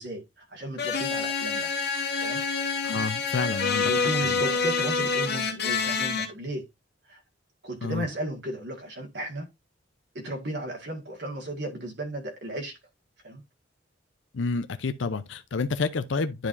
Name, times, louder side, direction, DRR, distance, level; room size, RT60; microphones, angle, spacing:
voice 1, 0.0-1.7 2.2-2.4 3.8-6.6 7.1-7.2 7.6-9.5 10.2-12.8 13.2-13.4, right 1 dB, 65° right, 1.8 m, -34 dB
sound 1, 0.8-6.3, left 5 dB, 60° left, 1.5 m, -27 dB
voice 2, 2.8-4.6 7.8-8.1 14.3-16.5, left 4 dB, 80° left, 0.6 m, -30 dB
10.5 x 4.8 x 2.6 m
head